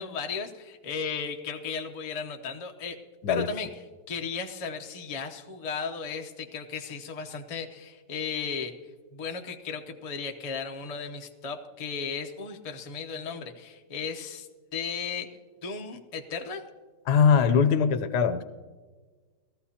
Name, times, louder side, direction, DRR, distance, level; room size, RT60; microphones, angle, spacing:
voice 1, 0.0-3.0 3.3-3.7 4.1-8.7 9.1-15.3 15.6-16.6, left 5 dB, 45° left, 4 dB, 0.4 m, -35 dB
voice 2, 17.1-18.4, left 6 dB, 70° left, 10 dB, 1.2 m, -21 dB
19.0 x 14.0 x 2.8 m, 1.4 s
omnidirectional pair, 2.0 m